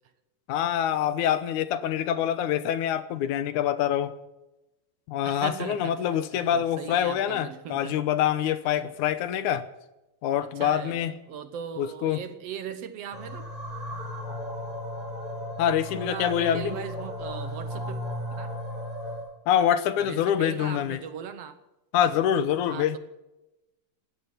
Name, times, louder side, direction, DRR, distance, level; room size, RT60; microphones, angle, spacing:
voice 1, 0.5-4.1 5.1-9.7 10.2-11.1 11.8-12.2 15.6-16.8 19.5-21.0 21.9-23.0, left 10 dB, 85° left, 2.4 m, -25 dB
voice 2, 5.3-6.0 6.3-8.0 8.8-8.9 10.4-13.4 16.0-18.0 18.4-18.6 20.0-21.6 22.6-23.0, right 8 dB, 65° right, 1.8 m, -38 dB
sound 1, 13.1-19.3, left 1 dB, 45° left, 9.0 m, -35 dB
17.5 x 14.0 x 5.6 m
omnidirectional pair, 3.5 m